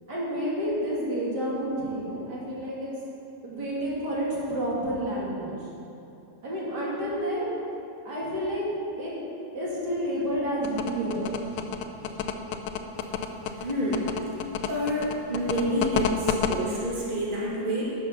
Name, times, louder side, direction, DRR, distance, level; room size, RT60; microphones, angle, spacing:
voice 1, 0.1-2.9 3.4-5.6 6.4-7.5 8.0-8.6 9.0-9.1 9.5-11.3, equal, 75° right, -7 dB, 3.2 m, -30 dB
sound 1, 10.6-16.6, left 9 dB, 85° left, 1.3 m, -29 dB
voice 2, 13.6-14.1 14.7-17.9, equal, 30° right, -6 dB, 2.1 m, -28 dB
11.5 x 6.4 x 7.3 m, 2.9 s
omnidirectional pair, 1.8 m